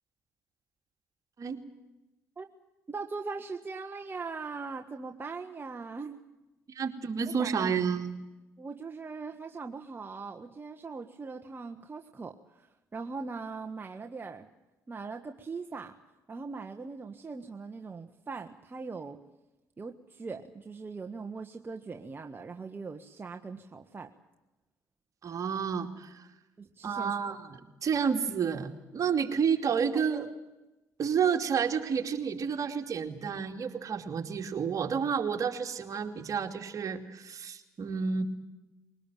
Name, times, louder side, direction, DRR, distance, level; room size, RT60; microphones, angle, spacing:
voice 1, 2.9-6.2 7.4-7.7 8.6-14.5 14.9-15.9 16.3-19.2 19.8-24.1 26.6-27.2 29.9-30.3, right 4 dB, 30° right, 4 dB, 1.5 m, -40 dB
voice 2, 6.7-8.1 25.2-26.3 26.8-30.3 31.0-38.2, right 6 dB, 50° right, 5 dB, 2.7 m, -30 dB
22.0 x 19.0 x 9.2 m, 1.0 s
hypercardioid pair, 60°, 7 cm